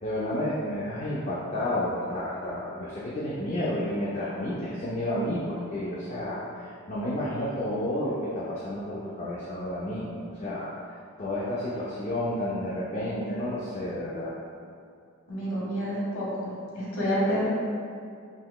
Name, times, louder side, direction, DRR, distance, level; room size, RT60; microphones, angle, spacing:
voice 1, 0.0-10.7 11.2-14.3, left 1 dB, 35° left, -7 dB, 0.3 m, -31 dB
voice 2, 15.3-17.5, equal, 75° left, -7 dB, 1.0 m, -29 dB
3.8 x 3.0 x 2.2 m, 2.4 s
head